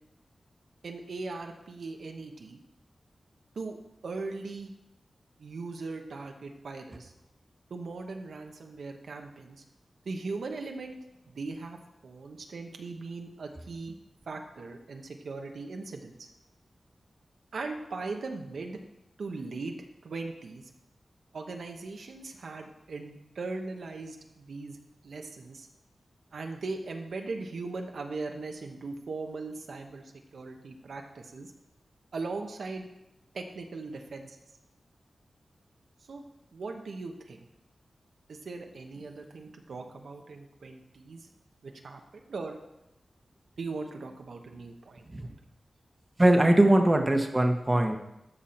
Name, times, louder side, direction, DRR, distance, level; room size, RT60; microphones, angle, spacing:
voice 1, 0.8-2.6 3.5-3.8 4.0-4.7 5.4-7.1 7.7-9.6 10.0-11.0 11.3-13.9 14.3-16.3 17.5-18.8 19.2-19.7 20.0-20.7 21.3-24.8 25.0-25.7 26.3-31.5 32.1-32.9 33.3-34.4 36.1-36.2 36.5-37.4 38.3-41.3 41.6-42.0 42.3-42.6 43.6-45.3, right 3 dB, 85° right, 3 dB, 1.0 m, -39 dB
voice 2, 46.2-48.0, right 1 dB, 25° right, 4 dB, 1.0 m, -21 dB
13.0 x 5.6 x 4.4 m, 0.89 s
wide cardioid pair, 90°, 0 cm